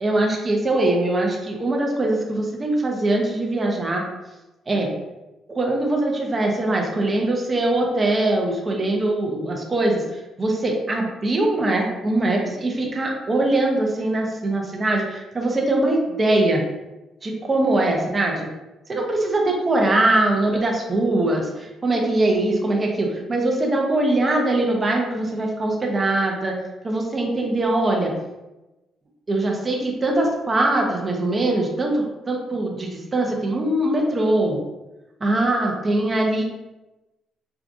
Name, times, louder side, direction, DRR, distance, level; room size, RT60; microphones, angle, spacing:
voice 1, 0.0-4.0 4.7-4.9 5.5-16.6 17.2-18.5 18.9-26.6 26.8-28.1 29.3-34.6 35.2-36.4, right 2 dB, 30° right, 0 dB, 0.8 m, -22 dB
4.6 x 2.4 x 2.6 m, 1.0 s
cardioid pair, 90°, 0 cm